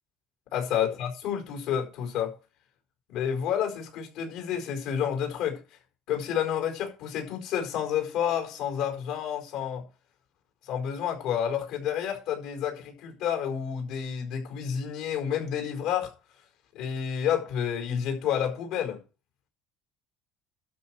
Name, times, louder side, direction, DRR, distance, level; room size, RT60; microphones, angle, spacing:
voice 1, 0.5-2.3 3.1-5.6 6.1-9.8 10.6-16.1 16.7-19.0, left 9 dB, 75° left, 4.6 m, -30 dB
12.5 x 4.6 x 7.6 m
cardioid pair, 135°, 0 cm